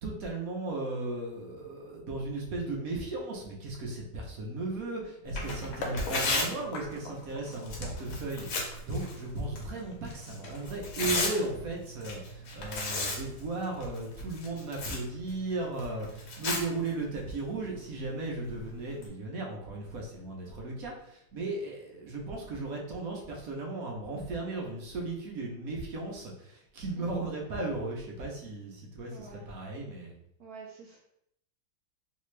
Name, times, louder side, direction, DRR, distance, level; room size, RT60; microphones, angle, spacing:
voice 1, 0.0-30.1, right 2 dB, 60° right, -1 dB, 1.0 m, -36 dB
Tearing, 5.2-19.1, left 2 dB, 65° left, 1.3 m, -37 dB
sound 1, 5.8-11.6, left 3 dB, 90° left, 1.5 m, -44 dB
voice 2, 29.1-29.5 30.4-31.0, right 5 dB, 80° right, -1 dB, 0.8 m, -47 dB
3.3 x 2.8 x 3.1 m, 0.75 s
omnidirectional pair, 2.1 m